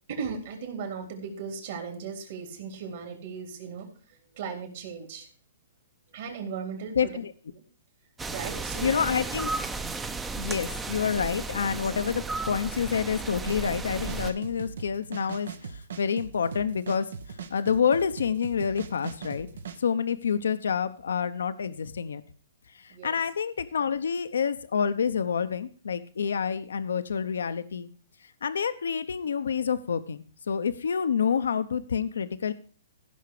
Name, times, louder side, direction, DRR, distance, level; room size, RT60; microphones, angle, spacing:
voice 1, 0.1-5.3 6.1-7.1 7.5-7.6 8.3-9.1 10.3-10.6 22.9-23.2, right 6 dB, 55° right, 2 dB, 3.7 m, -37 dB
voice 2, 7.0-7.3 8.8-9.5 10.3-19.5 19.8-22.2 22.7-27.9 28.4-32.5, left 7 dB, 85° left, 11 dB, 0.8 m, -28 dB
sound 1, 8.2-14.3, right 3 dB, 10° right, 0.6 m, -34 dB
sound 2, 13.4-19.8, right 6 dB, 80° right, 1.3 m, -40 dB
15.5 x 5.8 x 4.9 m, 0.41 s
hypercardioid pair, 150°, 0 cm